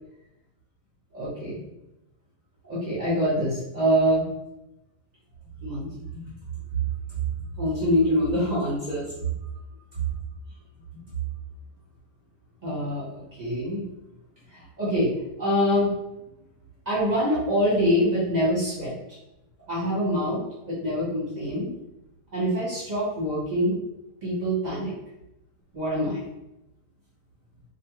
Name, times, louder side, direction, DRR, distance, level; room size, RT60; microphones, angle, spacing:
voice 1, 1.1-1.6 2.6-4.3 5.6-6.3 7.6-9.0 12.6-13.1 13.4-13.8 14.5-15.1 15.4-15.9 16.9-18.9 19.7-20.4 20.7-21.7 22.3-23.8 24.2-24.9 25.7-26.2, equal, 35° right, -9 dB, 0.9 m, -25 dB
2.4 x 2.3 x 2.9 m, 0.90 s
omnidirectional pair, 1.4 m